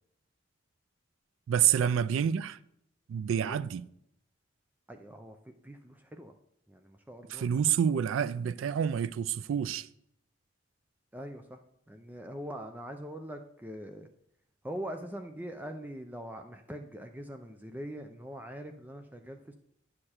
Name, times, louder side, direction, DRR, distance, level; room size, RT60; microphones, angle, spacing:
voice 1, 1.5-2.6 3.1-3.9 7.3-9.9, right 8 dB, 90° right, 0.3 m, -28 dB
voice 2, 4.9-6.3 6.7-7.6 11.1-11.6 11.9-14.1 14.6-19.5, equal, 10° right, 0.4 m, -42 dB
9.8 x 6.6 x 4.3 m
head